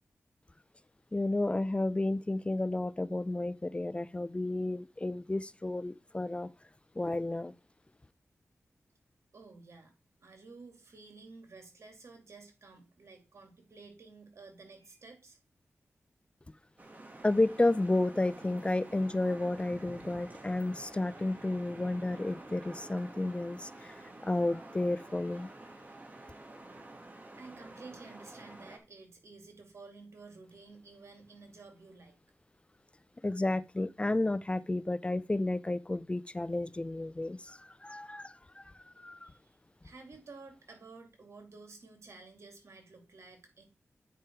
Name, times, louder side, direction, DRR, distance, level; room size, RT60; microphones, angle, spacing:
voice 1, 1.1-6.5 7.0-7.5 17.2-25.5 33.2-39.3, left 2 dB, 20° left, 0.4 m, -32 dB
voice 2, 9.3-9.9 10.2-15.4 27.4-32.2 39.2-39.5 39.8-43.6, right 3 dB, 70° right, 2.4 m, -52 dB
sound 1, 16.8-28.8, right 2 dB, 35° right, 1.9 m, -49 dB
9.0 x 5.0 x 4.5 m
cardioid pair, 60°, 5 cm